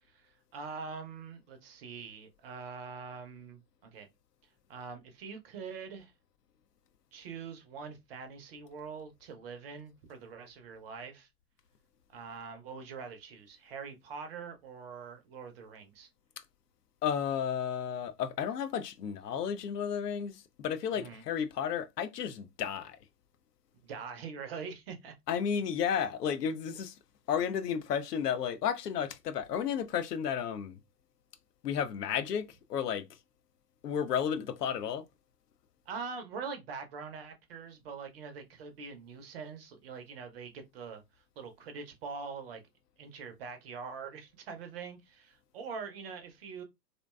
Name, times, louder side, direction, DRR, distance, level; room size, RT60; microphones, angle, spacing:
voice 1, 0.0-4.1 4.7-6.1 7.1-11.3 12.1-16.1 20.9-21.2 23.8-25.1 35.9-42.6 43.0-46.6, right 5 dB, 40° right, 0.5 m, -44 dB
voice 2, 17.0-23.0 25.3-26.9 27.3-30.8 31.6-33.1 33.8-35.0, left 8 dB, 70° left, 0.6 m, -32 dB
2.5 x 2.2 x 2.2 m
figure-of-eight pair, 105°, 50 cm